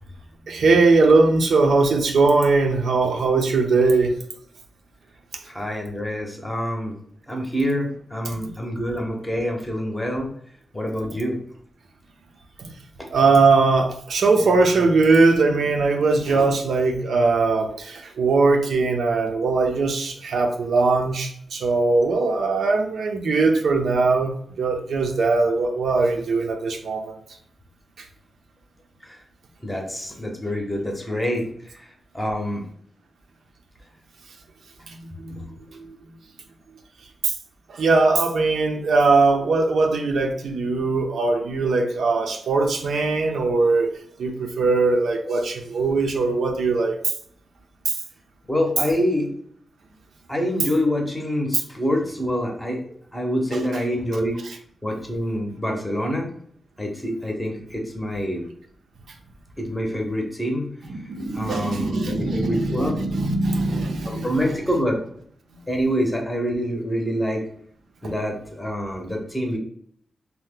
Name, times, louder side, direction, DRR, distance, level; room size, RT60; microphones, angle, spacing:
voice 1, 0.5-4.1 13.1-24.3 24.6-27.1 34.9-35.5 35.7-36.0 37.2-37.3 37.7-43.9 44.2-47.0 47.9-48.0 60.9-64.3, right 3 dB, 80° right, 4 dB, 0.4 m, -20 dB
voice 2, 5.5-7.0 7.3-10.3 10.7-11.4 13.0-13.1 29.0-29.2 29.6-32.6 35.3-35.4 48.5-49.3 50.3-54.4 54.8-56.3 56.8-58.4 59.6-61.0 61.3-63.1 64.0-65.0 65.7-67.4 68.0-69.6, equal, 10° left, 1 dB, 0.7 m, -26 dB
2.8 x 2.0 x 3.5 m, 0.63 s
wide cardioid pair, 115°, 0 cm